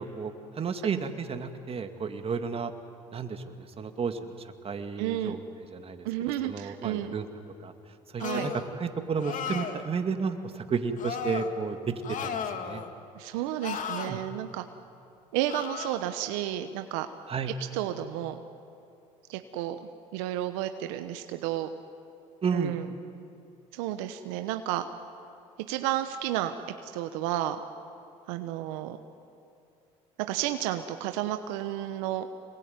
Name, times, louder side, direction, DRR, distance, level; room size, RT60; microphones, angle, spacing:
voice 1, 0.0-2.7 3.1-5.4 5.7-6.1 6.4-7.3 7.6-7.7 8.1-11.9 12.2-12.8 14.1-14.2 17.3-17.5 22.4-22.8, right 5 dB, 35° right, 7 dB, 2.2 m, -32 dB
voice 2, 5.0-5.4 6.0-7.1 8.2-8.5 13.1-14.6 15.3-17.1 17.7-18.4 19.3-19.8 20.1-21.7 22.5-22.9 23.7-24.9 25.7-26.5 26.8-27.6 28.3-29.0 30.2-32.3, right 13 dB, 80° right, 8 dB, 1.1 m, -31 dB
sound 1, 8.2-8.7 9.2-9.8 11.0-11.5 12.0-12.9 13.6-14.1 15.5-16.0, left 7 dB, 55° left, 2.2 m, -35 dB
26.0 x 21.0 x 9.6 m, 2.6 s
supercardioid pair, 75°, 16 cm